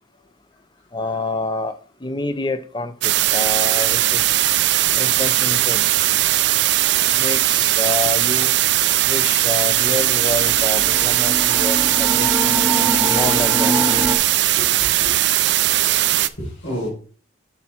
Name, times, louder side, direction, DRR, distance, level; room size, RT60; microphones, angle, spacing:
voice 1, 0.9-4.3 5.0-5.8 7.1-8.5 9.1-12.3 13.1-13.7, left 2 dB, 25° left, 0.6 m, -27 dB
sound 1, 3.0-16.3, right 14 dB, 60° right, 0.4 m, -18 dB
sound 2, 9.7-14.1, equal, 10° right, 0.9 m, -25 dB
voice 2, 14.2-15.1 16.1-16.9, equal, 85° left, 4.8 m, -34 dB
7.7 x 5.8 x 4.3 m
head